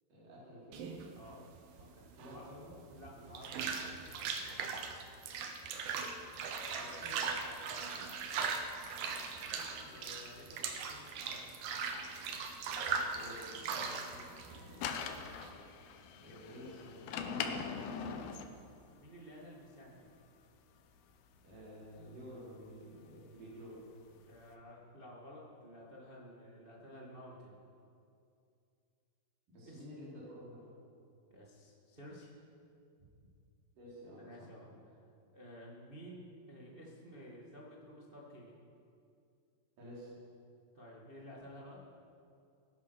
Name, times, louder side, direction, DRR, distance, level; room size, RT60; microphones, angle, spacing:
voice 1, 0.1-0.9 2.1-2.7 6.3-7.2 13.1-15.0 16.2-17.7 21.4-23.8 29.5-30.6 33.8-34.8 39.8-40.1, equal, 50° right, -7 dB, 5.8 m, -52 dB
sound 1, 0.7-15.5, right 5 dB, 70° right, 2.4 m, -40 dB
voice 2, 1.8-4.6 7.4-7.9 9.5-11.5 18.1-18.4 19.0-20.1 24.3-27.6 29.6-29.8 31.3-32.3 33.0-33.3 34.2-34.7 35.3-38.5 40.7-41.8, equal, 90° right, -4 dB, 0.5 m, -53 dB
sound 2, 7.2-19.1 19.8-23.6 23.8-24.5, left 6 dB, 70° left, 2.6 m, -46 dB
20.0 x 11.0 x 6.4 m, 2.5 s
omnidirectional pair, 5.0 m